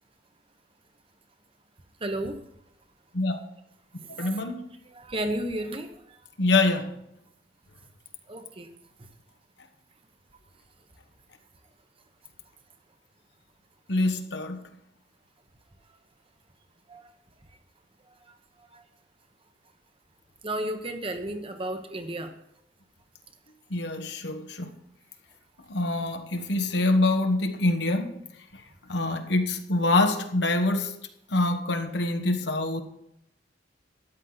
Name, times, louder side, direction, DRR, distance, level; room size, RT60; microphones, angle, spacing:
voice 1, 2.0-2.4 4.1-4.4 4.9-5.9 8.3-8.7 16.9-17.0 18.7-18.8 20.4-22.3, right 1 dB, 30° right, 6 dB, 1.0 m, -32 dB
voice 2, 4.2-4.6 6.4-6.9 13.9-14.6 23.7-24.7 25.7-28.1 28.9-30.9 31.3-32.8, left 2 dB, 60° left, 6 dB, 1.2 m, -25 dB
13.5 x 10.0 x 4.0 m, 0.77 s
head